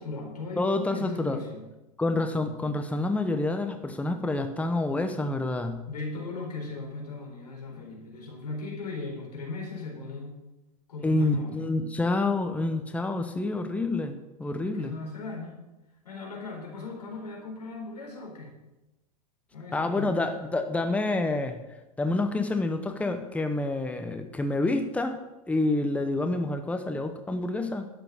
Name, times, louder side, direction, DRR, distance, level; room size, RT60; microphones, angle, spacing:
voice 1, 0.0-0.6 0.9-1.6 5.9-10.3 10.9-11.6 14.6-15.6 16.0-18.5 19.5-20.1, left 3 dB, 85° left, 0 dB, 4.4 m, -38 dB
voice 2, 0.6-1.4 2.0-5.9 11.0-14.9 19.7-21.6 22.0-25.2 25.5-27.9, left 2 dB, 5° left, 8 dB, 0.9 m, -28 dB
12.0 x 7.8 x 6.3 m, 1.0 s
hypercardioid pair, 95°, 20 cm